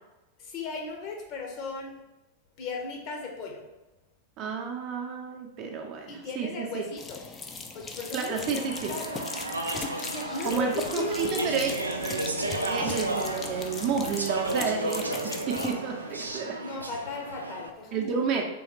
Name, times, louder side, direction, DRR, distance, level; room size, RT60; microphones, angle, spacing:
voice 1, 0.4-2.0 2.6-3.7 6.1-7.2 7.7-9.3 9.9-11.5 16.6-18.5, left 3 dB, 40° left, 1 dB, 0.9 m, -36 dB
voice 2, 4.4-6.8 8.1-8.7 10.5-11.7 12.6-16.6 17.9-18.5, right 6 dB, 40° right, 2 dB, 0.6 m, -30 dB
sound 1, 7.0-15.8, left 4 dB, 20° left, 0.4 m, -39 dB
Speech / Chatter, 8.3-17.7, right 2 dB, 80° right, 0.3 m, -33 dB
sound 2, 11.0-16.4, equal, 70° left, 0.9 m, -43 dB
3.8 x 3.1 x 3.0 m, 0.98 s
figure-of-eight pair, 90°, 0 cm